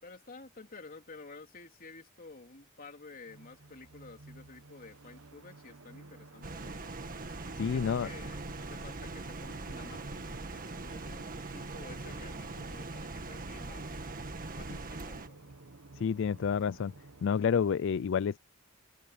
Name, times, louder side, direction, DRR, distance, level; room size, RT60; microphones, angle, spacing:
voice 1, 0.0-6.9 7.4-14.0 14.5-15.6 17.3-17.5, left 3 dB, 45° left, 3.4 m, -51 dB
sound 1, 3.3-17.2, right 2 dB, 75° right, 1.2 m, -52 dB
sound 2, 6.4-15.3, right 2 dB, 45° right, 1.7 m, -41 dB
voice 2, 7.6-8.1 16.0-16.9 17.2-18.4, left 7 dB, 60° left, 0.4 m, -29 dB
head